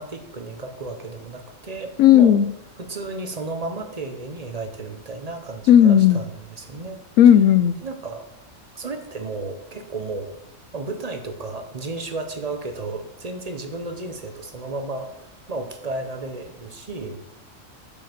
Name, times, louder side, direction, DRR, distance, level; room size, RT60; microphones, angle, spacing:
voice 1, 0.0-2.4 2.8-7.0 7.8-8.3 8.7-10.4 10.7-17.2, right 3 dB, 35° right, 6 dB, 0.8 m, -33 dB
voice 2, 2.0-2.5 5.7-6.2 7.2-7.7, left 10 dB, 85° left, 12 dB, 1.0 m, -13 dB
7.0 x 5.0 x 6.7 m, 0.90 s
omnidirectional pair, 1.3 m